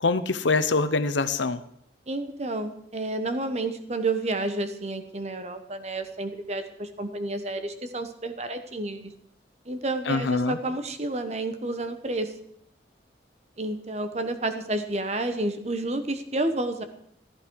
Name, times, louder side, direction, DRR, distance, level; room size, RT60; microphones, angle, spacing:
voice 1, 0.0-1.6 10.1-10.6, left 3 dB, 85° left, 12 dB, 0.9 m, -24 dB
voice 2, 2.1-9.1 9.7-12.3 13.6-16.8, right 2 dB, 35° right, 8 dB, 1.1 m, -30 dB
14.5 x 13.0 x 4.7 m, 0.69 s
head